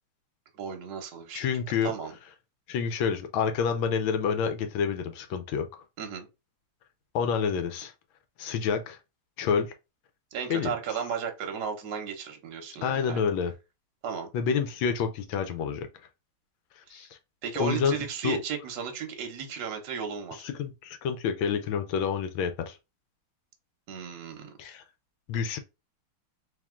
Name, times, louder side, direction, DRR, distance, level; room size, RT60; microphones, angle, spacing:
voice 1, 0.6-1.5 1.8-2.1 6.0-6.3 10.3-13.2 14.0-14.3 16.9-17.0 17.4-20.5 23.9-24.6, right 7 dB, 60° right, 1.3 m, -34 dB
voice 2, 1.3-1.9 2.7-5.7 7.1-7.9 8.4-9.0 9.4-9.7 10.5-10.7 12.8-13.5 14.3-15.9 16.9-17.1 17.6-18.0 18.2-18.4 20.4-22.8 24.6-24.8 25.3-25.6, left 6 dB, 75° left, 1.4 m, -28 dB
3.6 x 2.9 x 3.6 m
omnidirectional pair, 2.3 m